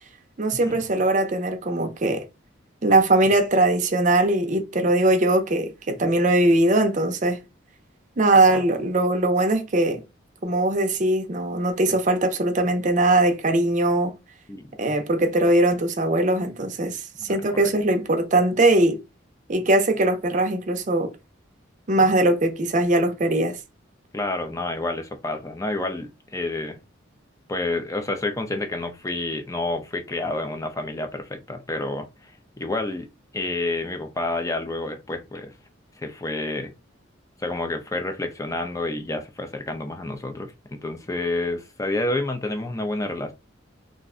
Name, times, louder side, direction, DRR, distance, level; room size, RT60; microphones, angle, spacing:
voice 1, 0.4-2.2 2.8-7.4 8.2-10.0 10.4-14.2 14.8-19.0 19.5-21.1 21.9-23.6, right 2 dB, 40° right, 0.5 m, -21 dB
voice 2, 17.3-17.7 24.1-26.8 27.5-33.1 33.3-35.5 36.0-36.7 37.4-40.5 40.8-43.3, left 2 dB, 15° left, 0.4 m, -29 dB
2.5 x 2.1 x 3.6 m
head